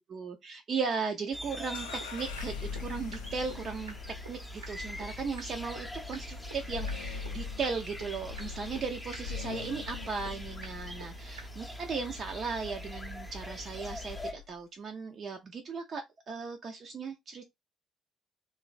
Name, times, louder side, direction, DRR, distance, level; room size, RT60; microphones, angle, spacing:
voice 1, 0.1-4.0 4.3-17.5, right 5 dB, 50° right, 0.4 m, -37 dB
sound 1, 1.3-14.3, equal, 5° left, 0.6 m, -43 dB
sound 2, 1.6-1.7 2.0-2.1 2.4-2.5 2.8-2.9 3.1-3.2 3.5-3.6 3.9-4.0 4.3-4.4 4.6-4.7 5.0-5.1 5.4-5.5 5.8-5.9 6.1-6.2 6.5-6.6 6.9-7.0 7.3-7.4 7.6-7.7 8.0-8.1 8.4-8.5 8.8-8.9 9.1-9.2 9.5-9.6 9.9-10.0 10.3-10.4 10.6-10.7 11.0-11.1 11.4-11.5, right 4 dB, 90° right, 0.7 m, -45 dB
sound 3, 1.7-14.6, left 6 dB, 85° left, 0.3 m, -43 dB
3.0 x 2.2 x 2.4 m
hypercardioid pair, 50°, 0 cm